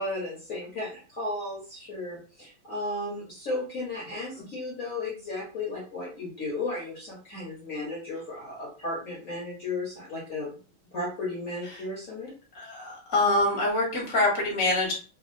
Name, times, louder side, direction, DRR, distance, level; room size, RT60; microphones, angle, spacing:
voice 1, 0.0-10.5 10.9-12.3, left 2 dB, 50° left, -5 dB, 1.0 m, -34 dB
voice 2, 12.5-14.9, left 2 dB, 15° left, -3 dB, 0.8 m, -25 dB
3.4 x 2.4 x 2.6 m, 0.38 s
omnidirectional pair, 2.3 m